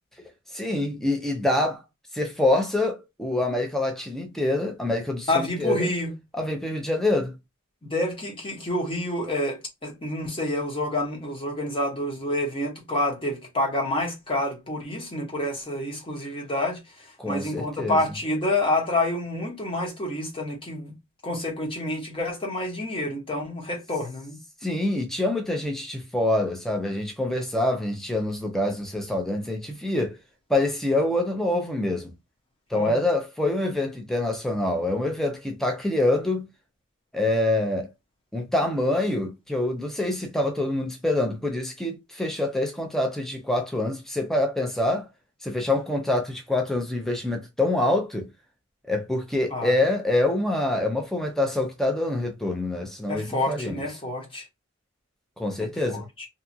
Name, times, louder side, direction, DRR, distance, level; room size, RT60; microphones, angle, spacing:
voice 1, 0.5-1.8 2.1-5.9 6.3-7.3 17.2-18.0 24.6-30.1 30.5-32.1 32.7-36.5 37.1-37.9 38.3-45.1 45.4-48.3 48.9-53.8 55.4-56.0, left 2 dB, ahead, 0.5 m, -26 dB
voice 2, 5.3-6.1 7.8-16.8 17.2-20.9 21.2-24.4 32.7-32.9 49.5-49.7 53.1-54.4 55.6-56.3, left 1 dB, 25° left, 1.0 m, -28 dB
2.7 x 2.3 x 2.7 m
head